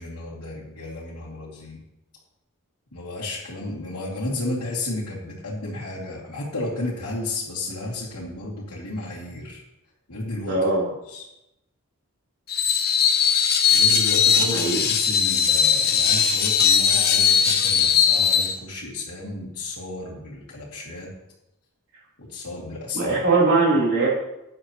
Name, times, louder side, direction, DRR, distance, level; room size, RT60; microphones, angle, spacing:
voice 1, 0.0-1.8 2.9-9.6 10.1-10.6 11.1-11.2 13.7-21.1 22.2-23.2, left 2 dB, 80° left, -6 dB, 2.4 m, -33 dB
voice 2, 10.5-10.8 14.5-14.8 22.9-24.1, right 3 dB, 60° right, -6 dB, 3.5 m, -20 dB
Screech, 12.5-18.5, left 7 dB, 45° left, 0.9 m, -19 dB
13.0 x 8.9 x 3.0 m, 0.89 s
head